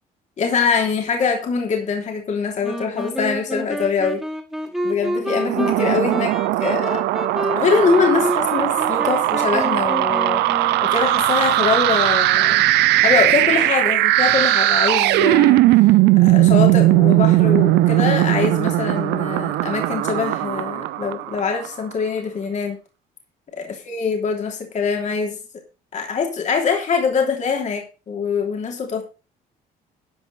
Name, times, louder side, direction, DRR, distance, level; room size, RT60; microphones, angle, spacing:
voice 1, 0.4-4.2 4.8-7.0 7.6-12.6 13.0-15.9 16.2-22.8 23.6-25.4 25.9-29.0, left 5 dB, 45° left, 1 dB, 3.2 m, -23 dB
Wind instrument woodwind instrument, 2.6-11.4, equal, ahead, 2.8 m, -29 dB
sound 1, 5.3-21.7, right 16 dB, 85° right, 0.7 m, -18 dB
12.5 x 5.4 x 6.2 m, 0.33 s
cardioid pair, 110°, 17 cm